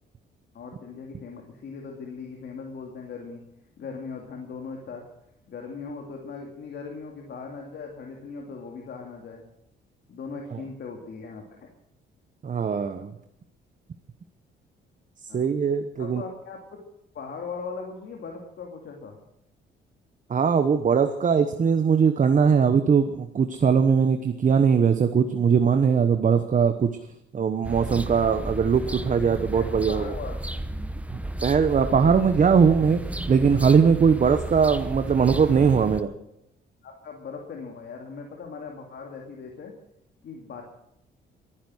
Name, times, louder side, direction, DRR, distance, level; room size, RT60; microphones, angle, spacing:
voice 1, 0.5-3.4 3.8-5.1 5.5-9.4 10.1-11.7 15.3-15.4 16.0-16.8 17.1-19.2 29.2-30.4 36.8-39.7 40.2-40.6, left 5 dB, 60° left, 1 dB, 2.7 m, -39 dB
voice 2, 12.4-13.1 15.3-16.2 20.3-26.9 27.3-30.1 31.4-33.0 33.3-36.1, right 6 dB, 40° right, 8 dB, 1.1 m, -20 dB
sound 1, 27.6-36.0, right 1 dB, 5° right, 1.0 m, -33 dB
22.0 x 10.5 x 6.4 m, 0.79 s
cardioid pair, 90°, 20 cm